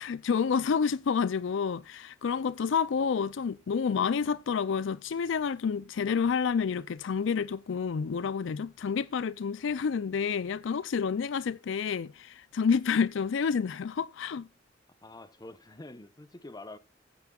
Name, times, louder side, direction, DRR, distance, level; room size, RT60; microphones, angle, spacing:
voice 1, 0.0-14.5, left 6 dB, 70° left, 0.4 m, -29 dB
voice 2, 15.0-16.8, left 2 dB, 20° left, 0.9 m, -46 dB
15.0 x 9.2 x 2.4 m
head